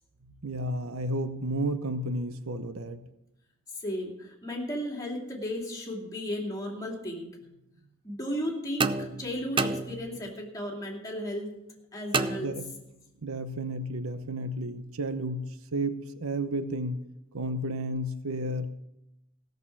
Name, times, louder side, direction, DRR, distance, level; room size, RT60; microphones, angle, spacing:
voice 1, 0.2-3.0 12.4-12.6 13.2-17.1 17.3-18.7, right 1 dB, 80° right, 11 dB, 0.8 m, -32 dB
voice 2, 3.7-7.3 8.0-11.5 11.9-12.5, equal, 15° left, -2 dB, 2.8 m, -34 dB
sound 1, 8.8-10.4 12.1-13.1, right 4 dB, 25° right, 0.5 m, -31 dB
16.5 x 6.7 x 7.2 m, 0.90 s
head